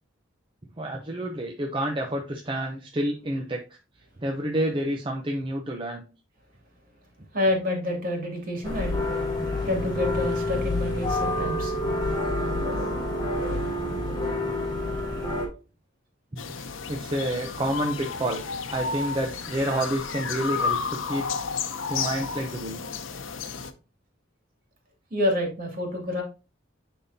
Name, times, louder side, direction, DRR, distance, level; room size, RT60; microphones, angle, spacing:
voice 1, 0.8-3.8 4.2-6.0 15.1-15.2 16.3-18.4 18.7-21.3 21.9-22.8, right 1 dB, 25° right, 2 dB, 0.7 m, -29 dB
voice 2, 7.3-8.9 9.6-12.0 25.1-26.2, left 1 dB, 45° right, 1 dB, 2.5 m, -28 dB
sound 1, 8.6-15.5, left 1 dB, 20° left, 2.4 m, -28 dB
sound 2, 16.4-23.7, left 5 dB, 85° left, 0.7 m, -32 dB
10.5 x 3.7 x 2.8 m, 0.32 s
head